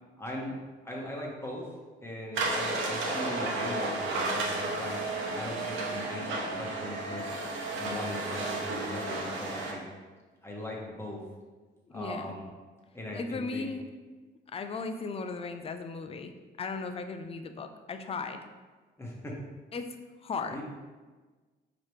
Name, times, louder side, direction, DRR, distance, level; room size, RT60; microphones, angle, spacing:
voice 1, 0.2-0.6 0.8-1.7 2.0-5.0 5.3-7.2 7.8-9.8 10.4-11.2 11.9-12.4 12.9-13.7 19.0-19.4 20.5-20.6, left 1 dB, 10° left, -3 dB, 1.0 m, -39 dB
sound 1, 2.3-9.7, right 2 dB, 80° right, 0.9 m, -32 dB
voice 2, 11.9-12.3 13.1-13.9 14.5-16.3 16.6-18.5 19.7-20.6, left 4 dB, 30° left, 8 dB, 0.4 m, -36 dB
4.8 x 2.9 x 3.2 m, 1.3 s
cardioid pair, 90°, 20 cm